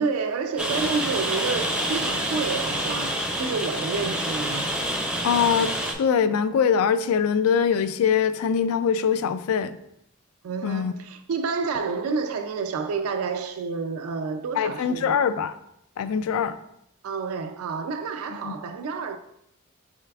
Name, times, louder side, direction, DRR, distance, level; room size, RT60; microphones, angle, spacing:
voice 1, 0.0-4.7 10.4-15.2 17.0-19.2, right 5 dB, 90° right, 0.4 m, -29 dB
Rain, 0.6-5.9, equal, 5° right, 0.4 m, -27 dB
voice 2, 5.2-9.8 10.6-10.9 14.5-15.6 16.0-16.6 18.4-18.5, left 7 dB, 90° left, 0.3 m, -23 dB
6.5 x 3.3 x 2.3 m
head